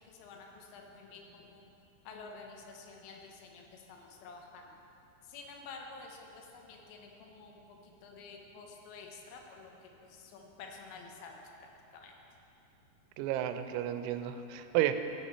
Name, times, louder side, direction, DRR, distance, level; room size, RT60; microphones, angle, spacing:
voice 1, 0.1-1.7 2.1-4.6 5.3-11.4 11.9-12.1, left 4 dB, 80° left, 1 dB, 3.0 m, -50 dB
voice 2, 13.2-14.9, right 13 dB, 90° right, 9 dB, 3.0 m, -32 dB
14.0 x 6.5 x 4.4 m, 3.0 s
omnidirectional pair, 5.4 m